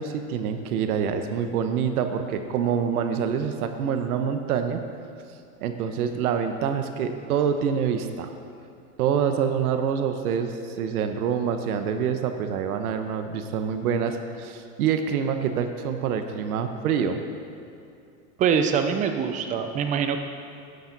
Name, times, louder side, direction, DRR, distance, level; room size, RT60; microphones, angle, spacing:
voice 1, 0.0-4.8 5.6-8.3 9.0-17.2, right 7 dB, 70° right, 7 dB, 1.1 m, -26 dB
voice 2, 18.4-20.2, right 7 dB, 15° right, 7 dB, 0.5 m, -24 dB
17.5 x 7.2 x 4.0 m, 2.5 s
supercardioid pair, 140°, 45 cm